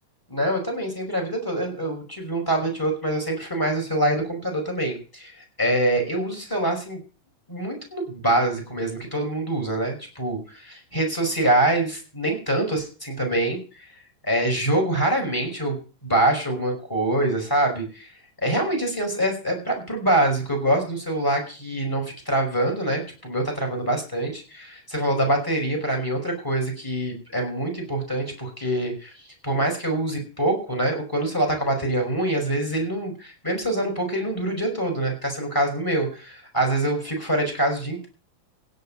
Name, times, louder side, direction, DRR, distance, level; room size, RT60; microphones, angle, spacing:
voice 1, 0.3-7.0 7.5-13.8 14.2-15.8 16.0-18.1 18.4-29.1 29.4-38.1, right 1 dB, 5° left, 3 dB, 5.4 m, -25 dB
16.5 x 5.7 x 9.1 m, 0.36 s
omnidirectional pair, 4.1 m